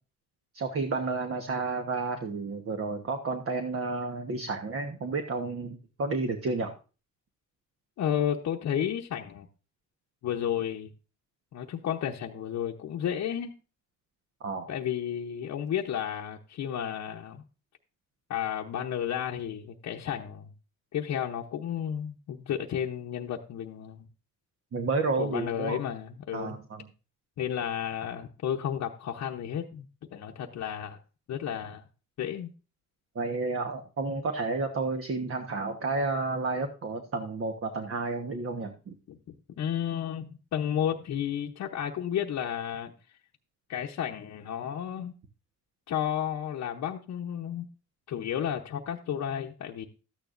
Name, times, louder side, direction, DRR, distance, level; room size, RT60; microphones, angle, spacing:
voice 1, 0.5-6.7 14.4-14.7 24.7-25.8 26.3-26.9 33.1-38.9, right 3 dB, 50° right, 1.3 m, -31 dB
voice 2, 8.0-9.5 10.2-10.9 11.5-13.5 14.7-17.4 18.3-20.5 20.9-24.1 25.2-26.6 27.4-29.8 30.1-31.0 31.3-31.8 32.2-32.5 39.1-39.2 39.6-42.9 43.7-45.1 45.9-47.7 48.1-49.9, left 9 dB, 65° left, 0.9 m, -32 dB
13.0 x 9.3 x 2.6 m
cardioid pair, 90°, 30 cm